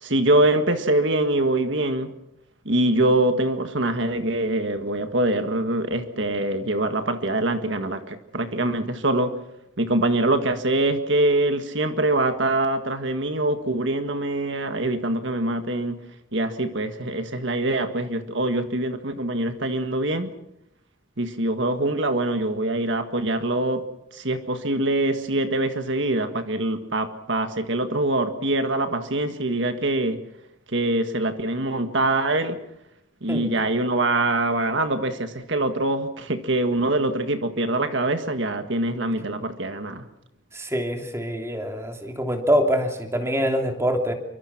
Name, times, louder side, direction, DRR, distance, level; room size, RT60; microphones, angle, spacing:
voice 1, 0.0-2.1 2.7-9.4 9.8-16.0 16.3-20.3 21.2-23.8 24.1-30.2 30.7-32.6 33.2-40.0, right 2 dB, 60° right, 8 dB, 1.7 m, -24 dB
voice 2, 40.5-44.1, equal, 15° right, 4 dB, 3.0 m, -24 dB
28.0 x 24.5 x 6.0 m, 0.80 s
head